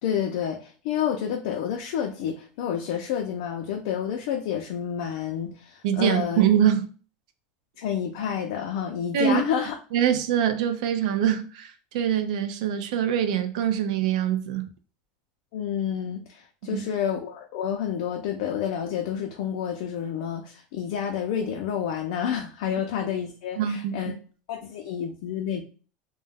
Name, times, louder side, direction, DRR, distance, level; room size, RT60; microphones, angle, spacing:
voice 1, 0.0-6.4 7.8-9.8 15.5-24.2 24.5-25.6, left 8 dB, 65° left, 0.4 m, -29 dB
voice 2, 5.8-6.9 9.1-9.4 9.9-14.7 16.6-16.9 23.6-23.9, right 9 dB, 80° right, 0.3 m, -24 dB
2.2 x 2.0 x 3.2 m
supercardioid pair, 170°, 4 cm